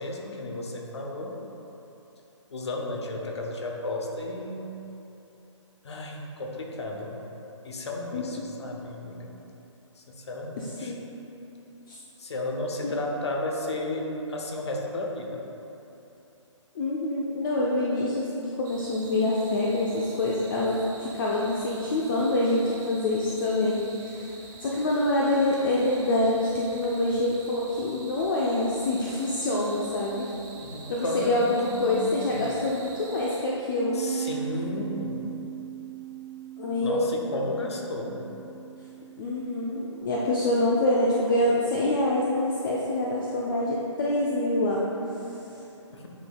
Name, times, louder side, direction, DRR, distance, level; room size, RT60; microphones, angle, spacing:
voice 1, 0.0-1.4 2.5-4.7 5.8-7.2 7.6-9.3 10.0-10.9 12.2-15.4 30.6-32.6 33.9-35.2 36.8-38.2 45.9-46.0, left 2 dB, 60° left, 0 dB, 1.0 m, -33 dB
voice 2, 10.6-11.1 11.9-12.0 12.8-12.9 16.7-24.3 24.6-30.3 30.9-34.3 36.6-37.1 39.2-44.9, left 1 dB, 40° left, -4 dB, 0.6 m, -26 dB
sound 1, 18.6-33.4, right 3 dB, 40° right, 1.2 m, -47 dB
Bass guitar, 33.8-40.0, right 9 dB, ahead, 0.7 m, -38 dB
9.5 x 5.4 x 2.3 m, 3.0 s
figure-of-eight pair, 140°, 16 cm